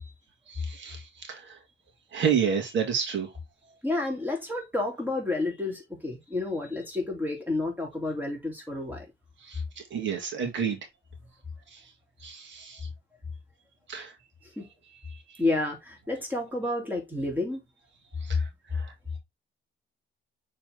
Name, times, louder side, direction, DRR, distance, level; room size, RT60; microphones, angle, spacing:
voice 1, 0.5-1.6 2.1-3.3 9.4-10.8 11.7-11.8 12.2-12.9 13.9-14.1 15.1-15.4 18.2-18.9, right 7 dB, 70° right, 2.1 m, -31 dB
voice 2, 3.8-9.1 14.6-14.7 15.4-17.6, left 2 dB, 10° right, 3.3 m, -30 dB
6.5 x 4.0 x 3.8 m
cardioid pair, 90°, 20 cm